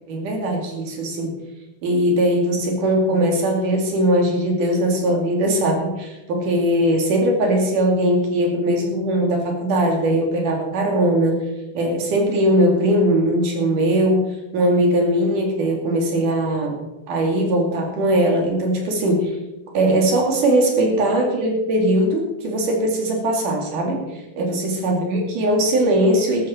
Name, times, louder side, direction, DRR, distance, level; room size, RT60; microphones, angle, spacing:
voice 1, 0.1-1.4 1.8-11.4 11.7-14.3 14.5-16.8 17.1-19.4 19.7-26.5, right 1 dB, 80° right, 1 dB, 4.2 m, -20 dB
13.5 x 13.0 x 4.4 m, 1.0 s
omnidirectional pair, 3.6 m